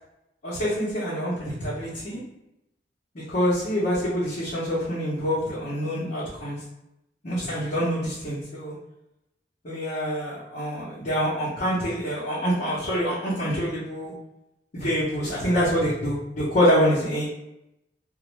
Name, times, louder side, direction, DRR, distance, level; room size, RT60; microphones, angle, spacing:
voice 1, 0.4-2.2 3.1-6.6 7.2-8.8 9.6-14.1 14.7-17.3, equal, 45° left, -9 dB, 0.7 m, -26 dB
2.4 x 2.0 x 3.0 m, 0.87 s
head